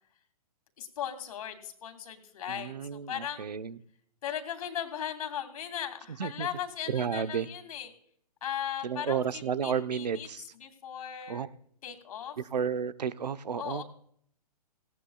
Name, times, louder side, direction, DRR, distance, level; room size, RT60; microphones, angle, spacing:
voice 1, 0.8-3.5 4.2-7.9 8.4-10.3 10.6-11.5 11.8-12.4 13.6-13.8, left 9 dB, 60° left, 7 dB, 2.6 m, -37 dB
voice 2, 2.5-3.8 6.2-6.5 6.9-7.5 8.8-10.4 11.3-11.5 12.4-13.8, right 7 dB, 85° right, 13 dB, 0.9 m, -32 dB
18.5 x 17.5 x 2.3 m, 0.65 s
hypercardioid pair, 140°, 20 cm